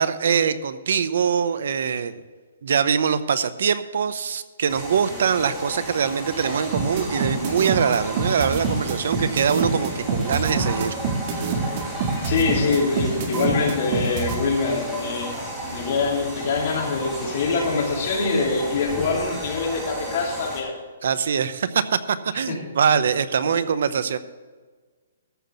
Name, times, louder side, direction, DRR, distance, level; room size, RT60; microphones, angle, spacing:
voice 1, 0.0-2.2 2.6-11.0 21.0-24.2, right 7 dB, 60° right, 14 dB, 0.8 m, -23 dB
sound 1, 4.7-20.6, right 1 dB, 10° right, 3.7 m, -33 dB
sound 2, 6.7-14.4, right 5 dB, 35° right, 1.8 m, -25 dB
voice 2, 12.2-15.3 15.7-20.7 22.4-22.6, left 4 dB, 40° left, -2 dB, 3.1 m, -24 dB
14.0 x 5.9 x 7.0 m, 1.4 s
hypercardioid pair, 165°, 0 cm